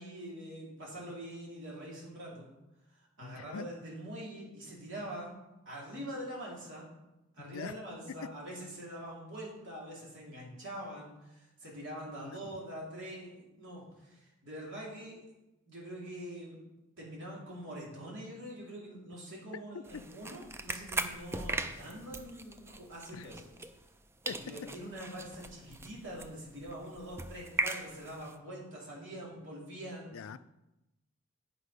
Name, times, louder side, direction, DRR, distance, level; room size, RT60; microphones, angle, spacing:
voice 1, 0.0-2.5 3.2-5.3 5.7-6.9 7.3-15.2 15.7-16.6 17.0-23.5 24.3-30.1, right 1 dB, 65° right, -4 dB, 2.6 m, -44 dB
voice 2, 3.2-3.7 7.4-7.8 8.2-8.3 12.2-12.4 19.9-20.0 23.1-23.3 24.3-24.4 30.1-30.4, left 7 dB, 75° left, 14 dB, 0.4 m, -43 dB
sound 1, 19.8-24.0 24.2-28.3, right 2 dB, 10° right, 0.4 m, -39 dB
8.3 x 5.3 x 5.3 m, 0.98 s
head